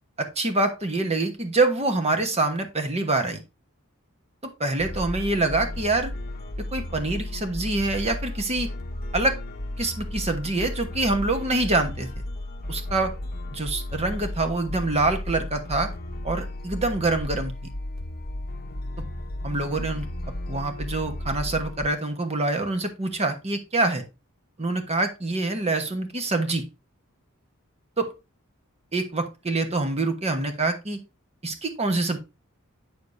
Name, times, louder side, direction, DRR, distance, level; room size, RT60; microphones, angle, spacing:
voice 1, 0.2-3.4 4.6-6.1 6.7-8.7 9.1-9.4 9.8-12.1 12.7-13.1 13.5-15.9 16.2-17.5 19.4-20.1 20.5-24.0 24.6-26.6 28.0-28.1 28.9-31.0 31.4-32.2, right 2 dB, 30° right, 6 dB, 1.2 m, -25 dB
sound 1, 4.8-21.9, left 1 dB, 45° left, 0.9 m, -34 dB
8.3 x 6.8 x 2.6 m, 0.26 s
head